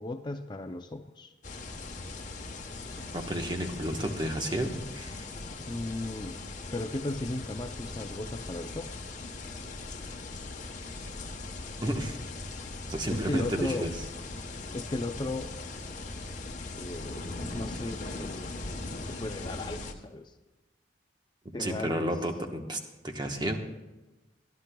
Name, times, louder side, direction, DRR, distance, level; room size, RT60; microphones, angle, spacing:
voice 1, 0.0-1.3 5.7-6.4 6.7-9.0 13.1-13.9 14.7-15.5 16.8-17.3 17.5-18.6 19.1-20.3 21.5-22.1, left 2 dB, 25° left, 6 dB, 0.5 m, -36 dB
sound 1, 1.4-19.9, left 2 dB, 45° left, 1.0 m, -40 dB
voice 2, 3.1-5.3 11.8-12.2 12.9-14.0 21.6-23.6, right 1 dB, 25° right, 3 dB, 1.1 m, -32 dB
24.0 x 11.5 x 2.3 m, 1.1 s
head